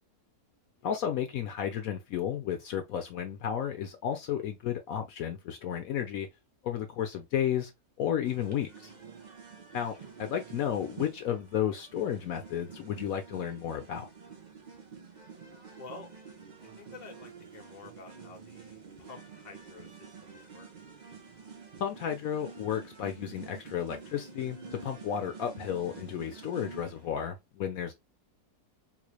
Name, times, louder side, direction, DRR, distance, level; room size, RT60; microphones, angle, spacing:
voice 1, 0.8-6.3 6.6-7.7 8.0-8.9 9.7-14.1 21.8-27.9, left 9 dB, 70° left, 1.0 m, -33 dB
sound 1, 8.2-27.3, right 5 dB, 40° right, 0.7 m, -48 dB
voice 2, 15.8-16.1 16.6-20.7, left 3 dB, 35° left, 0.8 m, -50 dB
3.9 x 3.1 x 2.2 m
omnidirectional pair, 1.7 m